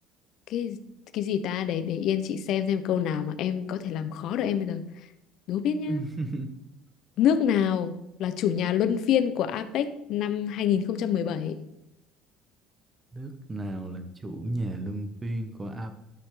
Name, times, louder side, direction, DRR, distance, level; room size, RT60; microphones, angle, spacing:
voice 1, 1.1-4.9 5.5-6.0 7.2-7.9 8.2-11.6, left 9 dB, 60° left, 12 dB, 0.8 m, -26 dB
voice 2, 5.9-6.5 13.1-16.0, right 2 dB, 20° right, 7 dB, 1.2 m, -33 dB
12.0 x 6.2 x 3.9 m, 0.84 s
cardioid pair, 125°, 0 cm